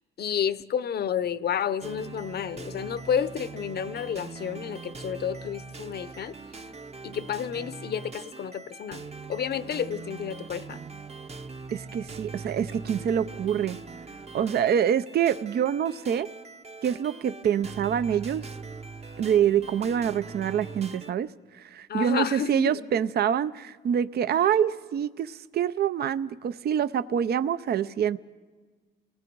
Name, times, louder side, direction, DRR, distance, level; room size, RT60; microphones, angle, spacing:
voice 1, 0.2-6.3 7.0-9.0 9.3-10.8 21.9-22.8, left 8 dB, 55° left, 16 dB, 0.8 m, -30 dB
sound 1, 1.8-21.1, right 4 dB, 30° right, 0.9 m, -42 dB
voice 2, 11.7-13.8 14.3-16.3 16.8-18.5 19.2-21.3 21.5-28.2, right 9 dB, 55° right, 14 dB, 0.6 m, -26 dB
29.0 x 19.5 x 4.7 m, 1.4 s
cardioid pair, 90°, 20 cm